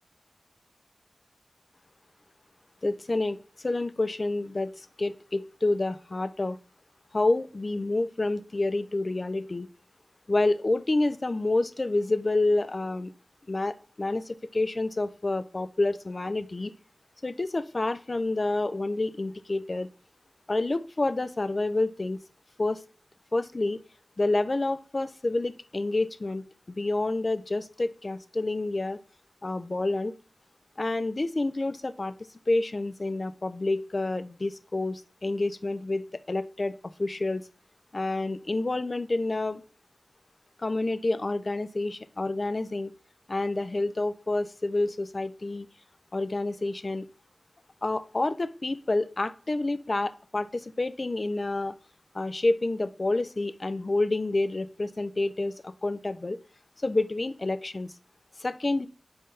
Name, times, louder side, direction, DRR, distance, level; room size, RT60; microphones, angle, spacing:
voice 1, 2.8-6.6 7.1-9.7 10.3-13.1 13.5-16.7 17.2-19.9 20.5-22.2 22.6-22.8 23.3-23.8 24.2-26.4 26.8-29.0 29.4-30.1 30.8-32.1 32.5-37.4 37.9-39.6 40.6-42.9 43.3-45.7 46.1-47.1 47.8-51.7 52.1-56.4 56.8-57.9 58.4-58.9, left 2 dB, 50° left, 12 dB, 0.4 m, -28 dB
4.4 x 3.6 x 3.2 m, 0.40 s
wide cardioid pair, 70°, 0 cm